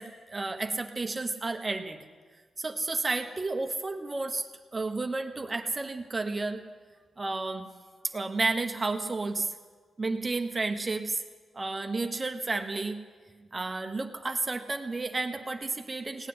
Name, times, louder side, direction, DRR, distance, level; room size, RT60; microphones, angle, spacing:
voice 1, 0.0-2.0 2.6-4.4 4.7-6.6 7.2-7.7 8.1-9.5 10.0-11.2 11.5-13.0 13.5-16.3, right 3 dB, 30° right, 6 dB, 1.1 m, -31 dB
17.5 x 8.3 x 9.6 m, 1.5 s
cardioid pair, 85°, 0 cm